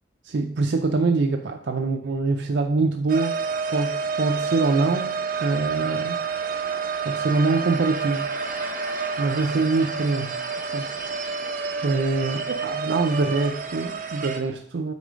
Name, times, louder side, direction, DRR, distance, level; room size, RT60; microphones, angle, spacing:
voice 1, 0.2-3.4 3.7-6.2 7.0-8.6 9.2-10.4 10.7-10.9 11.8-14.9, right 3 dB, 70° right, 4 dB, 0.5 m, -24 dB
sound 1, 3.1-14.4, right 5 dB, 45° right, 0.8 m, -29 dB
8.3 x 4.5 x 5.0 m, 0.65 s
head